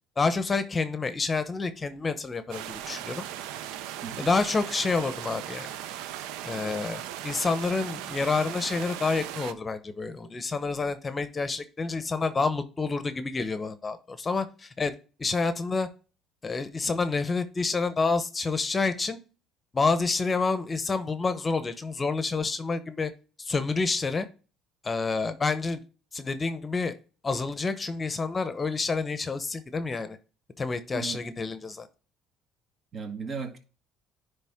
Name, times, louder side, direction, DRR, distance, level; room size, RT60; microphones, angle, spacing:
voice 1, 0.2-3.2 4.2-5.7 6.4-14.9 15.2-15.9 16.4-19.2 19.7-23.1 23.4-24.3 24.8-25.8 26.1-26.9 27.2-30.2 30.6-31.9, left 4 dB, 25° left, 0.8 m, -28 dB
sound 1, 2.5-9.5, right 11 dB, 80° right, 0.5 m, -38 dB
voice 2, 4.0-4.3 30.9-31.2 32.9-33.6, right 5 dB, 45° right, 1.6 m, -36 dB
10.0 x 3.4 x 3.6 m
supercardioid pair, 85°, 0 cm